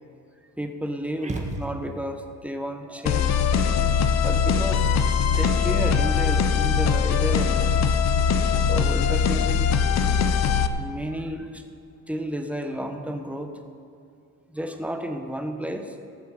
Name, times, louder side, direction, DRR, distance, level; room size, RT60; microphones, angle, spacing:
voice 1, 0.6-3.4 4.2-4.8 5.3-7.8 8.7-9.7 10.8-11.6 12.1-13.5 14.5-16.0, equal, 5° right, 5 dB, 1.1 m, -32 dB
sound 1, 1.2-2.2, right 2 dB, 20° right, 1.6 m, -33 dB
sound 2, 3.1-10.7, left 6 dB, 45° left, 0.8 m, -21 dB
19.0 x 7.7 x 5.1 m, 2.4 s
supercardioid pair, 95°, 37 cm